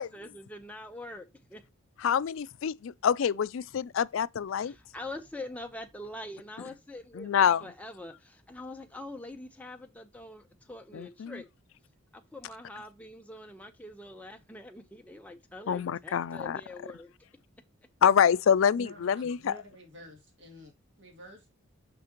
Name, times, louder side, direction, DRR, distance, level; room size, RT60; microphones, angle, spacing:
voice 1, 0.0-1.6 4.6-11.5 12.1-17.1, left 1 dB, 5° left, 0.9 m, -44 dB
voice 2, 2.0-4.7 7.1-7.6 10.9-11.4 15.7-16.6 18.0-19.5, left 8 dB, 65° left, 0.4 m, -26 dB
voice 3, 18.8-21.5, equal, 60° right, 2.8 m, -50 dB
6.0 x 5.8 x 3.0 m
head